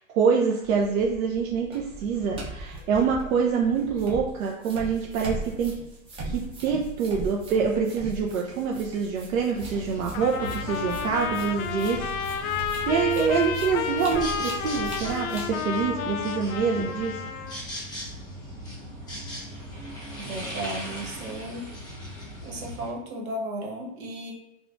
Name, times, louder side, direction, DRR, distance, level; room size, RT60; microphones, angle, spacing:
voice 1, 0.0-5.8 6.2-17.2, right 5 dB, 75° right, 0 dB, 0.6 m, -26 dB
sound 1, 0.6-15.5, right 2 dB, 15° right, 0.5 m, -40 dB
sound 2, 9.5-22.9, equal, 10° left, 1.0 m, -38 dB
Trumpet, 10.1-17.6, left 7 dB, 80° left, 0.5 m, -31 dB
voice 2, 20.2-21.7 22.4-24.3, right 1 dB, 90° right, -1 dB, 1.2 m, -34 dB
3.5 x 2.4 x 2.4 m, 0.94 s
hypercardioid pair, 140°, 41 cm